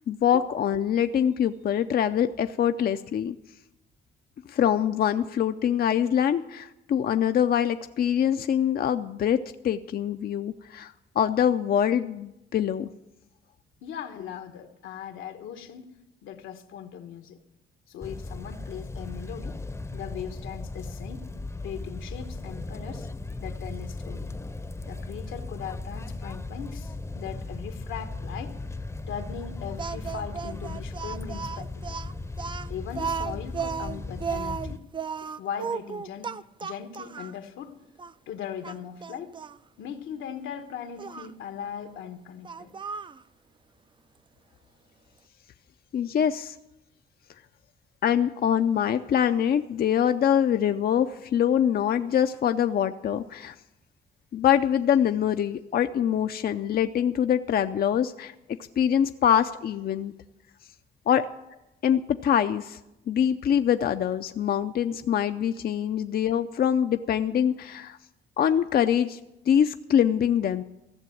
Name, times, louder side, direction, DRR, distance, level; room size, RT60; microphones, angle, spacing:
voice 1, 0.1-3.4 4.5-12.9 45.9-46.6 48.0-53.5 54.3-58.3 58.8-60.1 61.1-61.3 61.8-62.8 63.1-68.0 68.4-69.2 69.5-70.6, left 9 dB, 50° left, 8 dB, 0.5 m, -24 dB
voice 2, 13.8-15.9 16.2-17.4 17.9-19.6 19.9-21.3 21.6-23.1 23.4-24.3 24.8-28.5 29.1-32.0 32.7-34.8 35.4-36.3 36.6-37.7 38.3-39.3 39.8-42.7, left 8 dB, 85° left, 7 dB, 1.2 m, -39 dB
sound 1, 18.0-34.8, left 2 dB, 15° left, 0.7 m, -37 dB
Speech, 29.8-37.4 38.0-38.1 38.6-39.6 41.0-41.3 42.4-43.2, right 6 dB, 25° right, 0.4 m, -34 dB
15.0 x 6.9 x 9.1 m, 0.91 s
cardioid pair, 90°, 20 cm